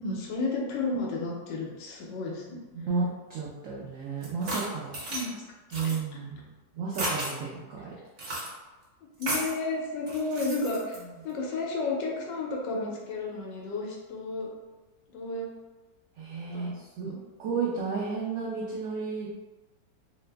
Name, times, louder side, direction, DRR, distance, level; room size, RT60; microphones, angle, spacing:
voice 1, 0.0-2.6 5.1-5.3 5.8-6.2 9.2-14.5 15.1-15.5 16.5-17.2, left 3 dB, 80° left, -1 dB, 1.3 m, -32 dB
voice 2, 2.7-4.9 5.7-6.5 6.7-7.9 16.2-17.1 17.4-19.3, right 4 dB, 85° right, -5 dB, 0.7 m, -32 dB
sound 1, 4.2-5.3 5.7-6.0 6.9-7.3 8.2-8.5 9.2-9.6 10.1-11.0, right 1 dB, 50° right, 1.0 m, -33 dB
3.2 x 2.0 x 3.3 m, 1.2 s
omnidirectional pair, 1.9 m